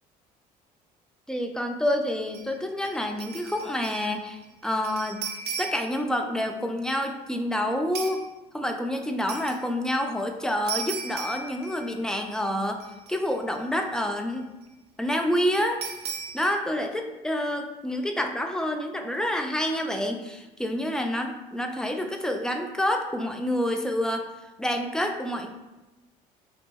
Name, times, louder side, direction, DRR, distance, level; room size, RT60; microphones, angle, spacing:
voice 1, 1.3-5.2 5.6-8.2 8.5-12.8 13.1-14.5 15.0-15.8 16.3-24.3 24.6-25.5, left 1 dB, 5° left, 4 dB, 0.3 m, -28 dB
sound 1, 2.3-2.5 2.8-4.1 4.4-6.0 7.9-8.2 9.3-9.6 10.7-12.1 12.4-12.5 12.8-13.6 15.8-16.5, right 5 dB, 50° right, 0.6 m, -36 dB
2.6 x 2.6 x 2.8 m, 1.0 s
hypercardioid pair, 55°, 21 cm